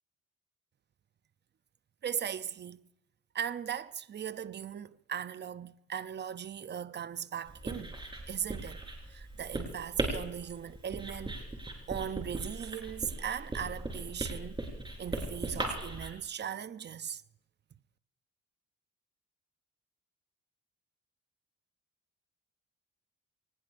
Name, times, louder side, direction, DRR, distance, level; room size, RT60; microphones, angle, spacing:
voice 1, 2.0-2.8 3.3-7.9 8.3-11.4 11.9-14.6 15.0-17.2, right 8 dB, 35° right, 0.7 m, -38 dB
Writing, 7.5-16.1, right 2 dB, 15° right, 4.7 m, -38 dB
24.5 x 20.0 x 2.6 m
cardioid pair, 90°, 30 cm